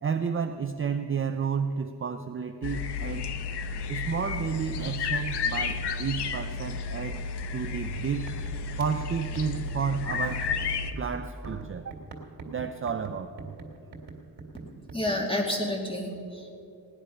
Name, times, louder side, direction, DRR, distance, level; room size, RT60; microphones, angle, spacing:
voice 1, 0.0-3.3 3.9-7.2 7.5-8.3 8.8-10.7 11.0-12.0 12.5-13.6, right 6 dB, 30° right, 6 dB, 0.5 m, -31 dB
sound 1, 2.6-10.9, left 4 dB, 65° left, 0.9 m, -32 dB
sound 2, 7.5-7.7 7.9-15.2, right 3 dB, 65° right, 2.4 m, -43 dB
voice 2, 14.6-16.5, left 1 dB, 10° left, 0 dB, 2.5 m, -30 dB
18.0 x 10.0 x 5.6 m, 2.6 s
cardioid pair, 110°, 44 cm